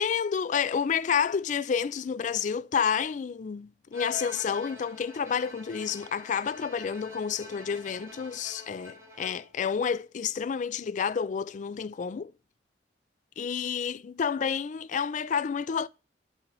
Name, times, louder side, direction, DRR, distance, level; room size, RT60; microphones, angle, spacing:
voice 1, 0.0-12.3 13.4-15.9, left 7 dB, 45° left, 0.3 m, -29 dB
Bowed string instrument, 3.9-9.6, left 3 dB, 15° right, 1.2 m, -45 dB
9.9 x 4.9 x 2.5 m
head